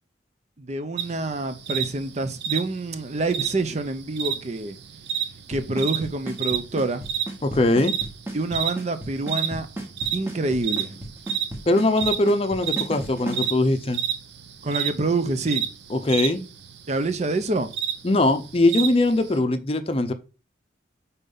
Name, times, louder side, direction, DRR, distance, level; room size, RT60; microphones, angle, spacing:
voice 1, 0.6-4.8 5.5-7.0 8.3-9.7 10.1-11.0 14.6-15.6 16.9-17.7, right 2 dB, 35° right, 0.6 m, -27 dB
sound 1, 1.0-19.4, right 9 dB, 70° right, 0.8 m, -31 dB
Drum kit / Snare drum / Bass drum, 5.5-13.5, right 1 dB, 15° right, 1.2 m, -34 dB
voice 2, 7.4-8.0 11.7-14.0 15.9-16.4 18.0-20.1, left 2 dB, 30° left, 0.6 m, -21 dB
5.4 x 4.3 x 5.4 m
head